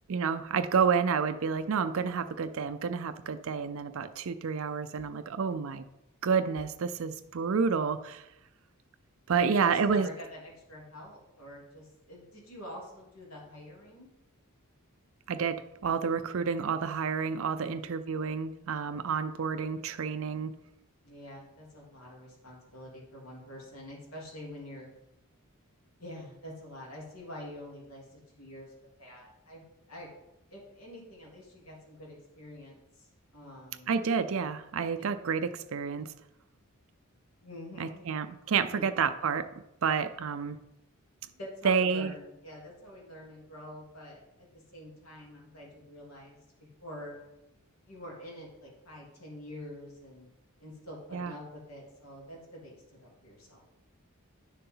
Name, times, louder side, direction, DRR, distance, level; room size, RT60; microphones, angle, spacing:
voice 1, 0.1-5.8 6.2-8.3 9.3-10.1 15.3-20.5 33.9-36.1 37.8-39.5 39.8-40.6 41.6-42.1 51.1-51.3, right 6 dB, 65° right, 10 dB, 0.5 m, -29 dB
voice 2, 9.3-14.1 17.5-17.9 21.0-24.9 26.0-30.1 30.5-33.9 37.4-38.1 38.7-38.8 41.4-44.5 44.7-46.4 46.8-47.2 47.9-50.3 50.6-53.7, left 1 dB, 70° left, -3 dB, 3.2 m, -46 dB
10.0 x 6.8 x 3.9 m, 0.89 s
head